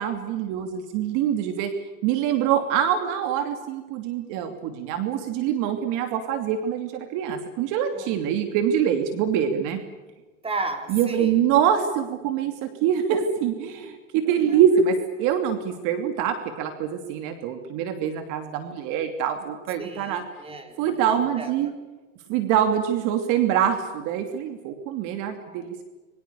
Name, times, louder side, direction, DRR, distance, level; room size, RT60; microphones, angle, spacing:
voice 1, 0.0-1.7 2.0-9.8 10.9-20.2 20.8-21.7 22.3-25.8, right 9 dB, 50° right, 7 dB, 2.9 m, -24 dB
voice 2, 10.4-11.4 14.2-14.6 19.8-21.8 25.4-25.8, right 3 dB, 15° right, 6 dB, 4.4 m, -35 dB
27.0 x 24.0 x 7.0 m, 1.2 s
hypercardioid pair, 115°, 38 cm